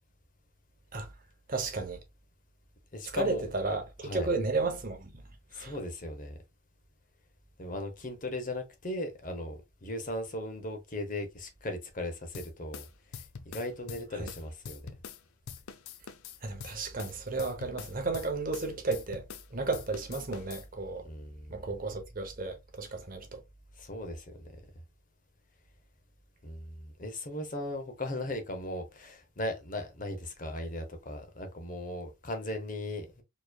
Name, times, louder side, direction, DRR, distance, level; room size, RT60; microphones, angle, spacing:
voice 1, 1.5-2.0 3.1-5.2 5.5-5.8 14.1-14.3 16.4-19.2 19.5-21.0 21.5-23.4, right 3 dB, 40° right, 0.8 m, -33 dB
voice 2, 2.9-3.4 4.0-4.3 5.5-6.4 7.6-12.9 13.1-14.9 21.0-21.5 23.8-24.5 26.4-33.2, left 1 dB, 40° left, 0.8 m, -38 dB
sound 1, 12.3-15.2 15.5-19.5 19.7-20.7, left 6 dB, 90° left, 0.5 m, -44 dB
4.4 x 3.1 x 2.3 m
head